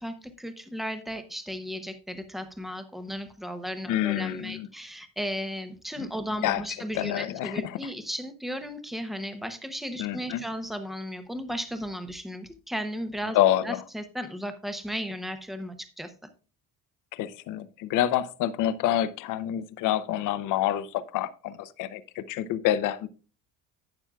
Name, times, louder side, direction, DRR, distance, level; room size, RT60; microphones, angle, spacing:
voice 1, 0.0-13.4 13.6-16.1, equal, ahead, 9 dB, 0.7 m, -35 dB
voice 2, 3.9-4.7 6.0-6.1 6.4-6.6 6.9-7.8 10.0-10.4 13.3-13.8 17.1-23.1, left 12 dB, 55° left, 15 dB, 0.7 m, -27 dB
12.0 x 8.7 x 2.3 m, 0.36 s
cardioid pair, 160°, 38 cm